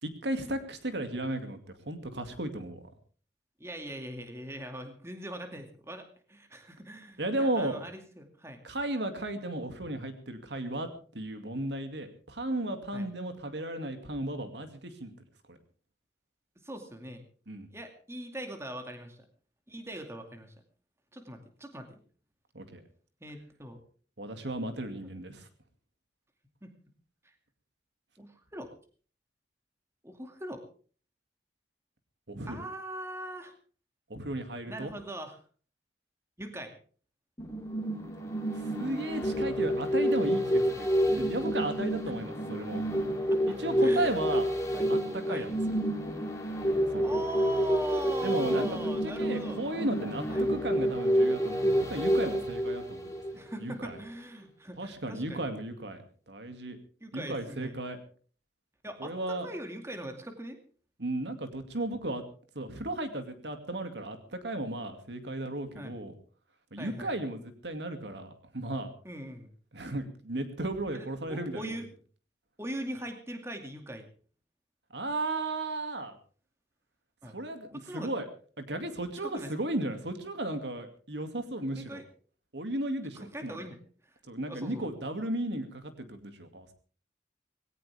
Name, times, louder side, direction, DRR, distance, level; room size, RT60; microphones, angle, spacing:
voice 1, 0.0-2.8 7.2-7.8 8.6-10.9 11.1-15.1 15.5-15.6 17.5-17.7 22.5-22.8 24.2-25.5 32.3-32.6 34.1-34.9 38.5-40.9 41.2-42.8 43.5-44.5 44.9-45.6 46.9-47.1 48.2-53.1 53.6-54.0 54.8-56.8 57.1-58.0 59.0-59.5 61.0-62.2 62.5-66.1 66.7-68.9 69.7-71.8 74.9-76.1 77.3-78.3 78.6-82.0 82.5-83.6 84.3-86.7, right 1 dB, 80° right, 8 dB, 2.4 m, -35 dB
voice 2, 3.6-6.0 6.3-8.6 12.9-13.1 16.6-17.3 17.7-19.2 19.7-20.5 21.1-22.0 23.2-23.8 25.0-25.1 26.6-26.7 28.2-28.7 30.0-30.6 32.5-33.5 34.7-35.4 36.4-36.8 42.1-42.2 43.3-44.4 44.7-45.0 45.3-45.5 47.0-49.6 50.3-50.4 53.3-55.4 57.0-57.7 58.8-60.6 65.7-65.9 66.8-67.1 69.0-69.5 70.9-71.9 72.6-74.0 77.2-77.4 77.7-78.1 79.3-79.5 81.8-82.0 83.2-83.8 84.5-84.9, right 1 dB, 15° right, 5 dB, 2.3 m, -41 dB
sound 1, 37.4-53.6 54.0-54.1, equal, 15° left, 3.3 m, -29 dB
19.5 x 17.5 x 3.5 m, 0.42 s
head